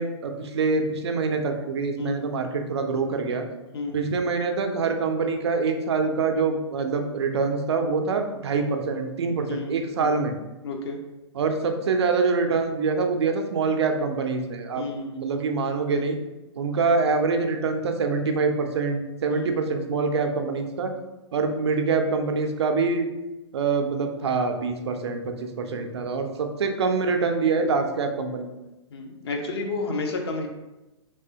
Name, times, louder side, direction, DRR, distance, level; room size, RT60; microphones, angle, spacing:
voice 1, 0.0-3.4 3.9-10.3 11.3-14.8 15.2-16.2 16.6-20.9 21.3-23.1 23.5-28.5, right 4 dB, 60° right, 5 dB, 0.5 m, -25 dB
voice 2, 2.0-2.4 3.7-4.1 9.5-10.2 10.6-11.0 14.7-15.2 19.3-19.6 25.7-25.9 28.9-30.5, left 3 dB, 55° left, 2 dB, 0.7 m, -32 dB
3.4 x 3.2 x 2.8 m, 1.0 s
figure-of-eight pair, 120°, 16 cm